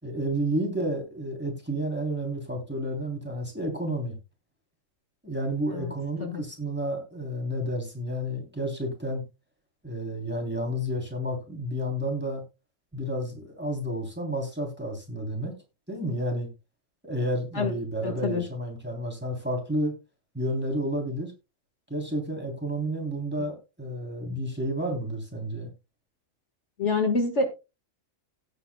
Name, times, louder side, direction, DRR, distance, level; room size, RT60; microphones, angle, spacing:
voice 1, 0.0-4.2 5.2-9.2 9.8-12.4 12.9-15.5 15.9-16.5 17.0-19.9 20.3-21.3 21.9-25.7, equal, 10° right, 3.2 m, -31 dB
voice 2, 18.0-18.4 26.8-27.5, left 3 dB, 60° left, 1.9 m, -26 dB
16.5 x 8.2 x 2.2 m
omnidirectional pair, 1.3 m